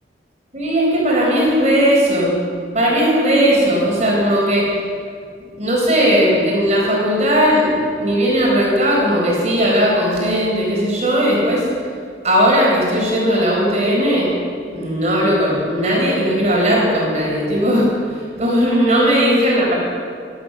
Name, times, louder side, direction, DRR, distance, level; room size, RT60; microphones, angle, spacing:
voice 1, 0.5-2.4 2.7-4.7 5.6-11.6 12.2-14.3 14.7-17.9 18.4-19.7, equal, 35° right, -3 dB, 4.4 m, -17 dB
15.5 x 11.0 x 6.9 m, 2.2 s
head